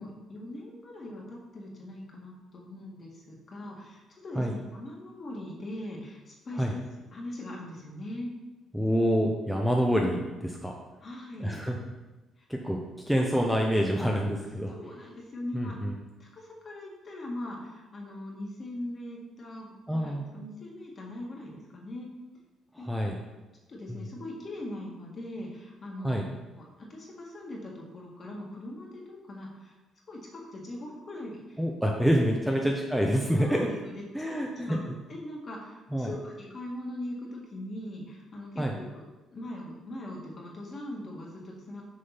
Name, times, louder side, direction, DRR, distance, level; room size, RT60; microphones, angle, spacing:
voice 1, 0.0-6.8 7.1-8.3 11.0-11.6 12.4-12.5 14.7-15.8 16.2-22.1 22.8-22.9 23.7-29.7 30.1-31.6 32.4-32.5 33.4-34.0 34.7-34.8 35.1-39.0 39.3-41.8, left 1 dB, 35° left, -2 dB, 1.8 m, -41 dB
voice 2, 8.7-10.8 11.4-11.8 12.5-12.8 13.1-14.7 15.5-15.9 19.9-20.2 22.7-23.2 23.9-24.0 26.0-26.2 31.6-33.7 34.1-34.8 35.9-36.1 38.6-38.7, equal, ahead, 0 dB, 0.7 m, -27 dB
6.5 x 3.8 x 5.9 m, 1.1 s
cardioid pair, 110°, 0 cm